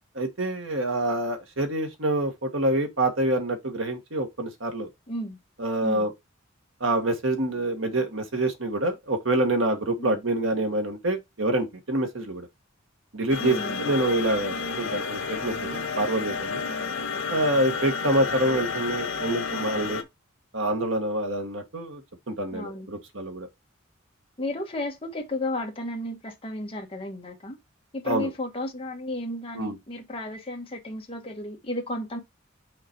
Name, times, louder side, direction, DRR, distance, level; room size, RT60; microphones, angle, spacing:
voice 1, 0.2-4.9 5.6-6.1 6.8-12.5 13.1-16.6 17.3-20.0 20.5-22.0 22.3-23.5 28.1-28.3 29.5-29.8, right 1 dB, 75° right, 1.7 m, -26 dB
voice 2, 5.1-5.4 5.8-6.1 10.0-10.2 13.4-13.8 16.7-17.0 22.5-22.9 24.4-27.6 27.9-32.2, left 1 dB, 30° left, 1.4 m, -33 dB
sound 1, 13.3-20.0, left 5 dB, 80° left, 1.3 m, -31 dB
5.8 x 4.1 x 4.5 m
head